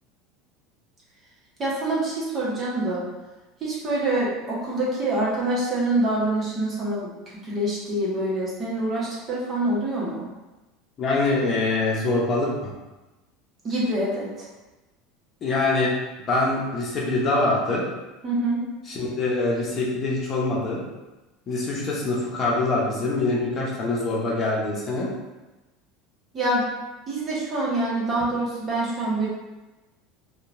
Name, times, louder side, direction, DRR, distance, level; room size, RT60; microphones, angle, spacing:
voice 1, 1.6-3.1 3.6-7.1 7.4-10.3 13.6-14.3 18.2-18.6 26.3-26.7 27.1-29.3, right 1 dB, 35° right, -6 dB, 1.1 m, -25 dB
voice 2, 11.0-12.7 15.4-15.9 16.3-17.8 18.9-20.8 21.5-25.1, left 2 dB, 40° left, -4 dB, 0.7 m, -24 dB
2.8 x 2.3 x 2.6 m, 1.1 s
hypercardioid pair, 95°, 0 cm